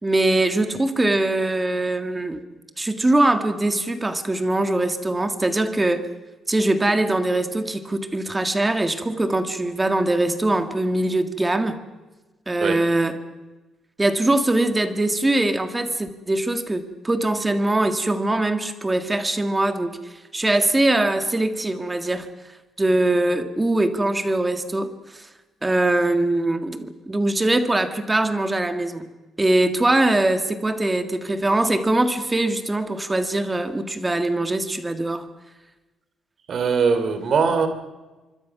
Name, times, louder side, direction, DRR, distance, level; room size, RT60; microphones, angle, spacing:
voice 1, 0.0-2.4 2.8-6.1 6.5-11.8 12.5-13.2 14.0-20.0 20.3-22.3 22.8-25.3 25.6-29.1 29.4-35.3, right 2 dB, 10° right, 8 dB, 1.8 m, -22 dB
voice 2, 36.5-37.7, right 5 dB, 45° right, 10 dB, 2.9 m, -21 dB
25.5 x 24.5 x 6.0 m, 1.2 s
cardioid pair, 155°, 0 cm